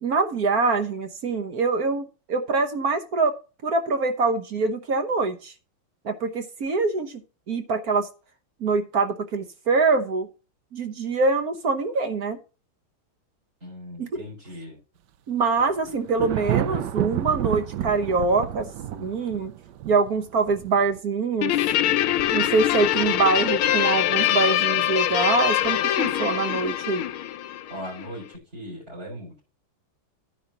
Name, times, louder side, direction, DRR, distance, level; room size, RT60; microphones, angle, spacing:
voice 1, 0.0-3.3 3.6-5.5 6.0-7.2 7.5-8.1 8.6-10.3 10.7-12.4 14.0-14.2 15.3-18.7 18.9-19.5 19.8-21.6 22.3-27.0, right 4 dB, 50° right, 7 dB, 1.2 m, -24 dB
voice 2, 13.6-14.8 19.0-19.1 27.7-29.4, equal, 30° right, -5 dB, 5.2 m, -39 dB
Thunder, 15.6-21.0, right 12 dB, 75° right, 1.0 m, -30 dB
Guitar, 21.4-28.1, left 12 dB, 75° left, 1.5 m, -23 dB
11.0 x 9.9 x 2.9 m, 0.33 s
omnidirectional pair, 2.4 m